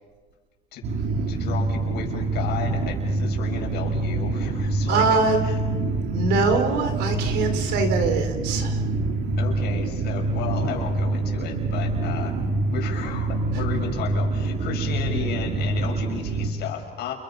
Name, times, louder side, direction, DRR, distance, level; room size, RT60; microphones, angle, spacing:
sound 1, 0.8-16.5, right 2 dB, 70° right, 3.8 m, -26 dB
voice 1, 1.3-5.1 5.4-5.6 9.4-12.4 12.7-17.1, left 8 dB, 80° left, 2 dB, 6.1 m, -34 dB
voice 2, 4.9-5.4 6.1-8.8, right 3 dB, 90° right, 7 dB, 4.2 m, -23 dB
30.0 x 29.5 x 5.7 m, 1.4 s
cardioid pair, 110°, 17 cm